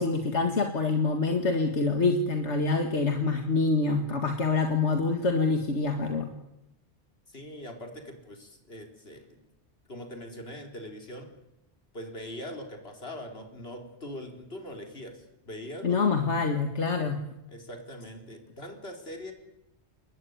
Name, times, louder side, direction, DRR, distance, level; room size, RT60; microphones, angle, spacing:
voice 1, 0.0-6.3 15.8-17.2, left 3 dB, 85° left, 5 dB, 2.2 m, -26 dB
voice 2, 7.3-9.4 9.9-11.3 11.9-16.0 17.5-19.3, left 1 dB, 60° left, 4 dB, 4.4 m, -42 dB
29.0 x 21.0 x 9.6 m, 0.94 s
omnidirectional pair, 1.1 m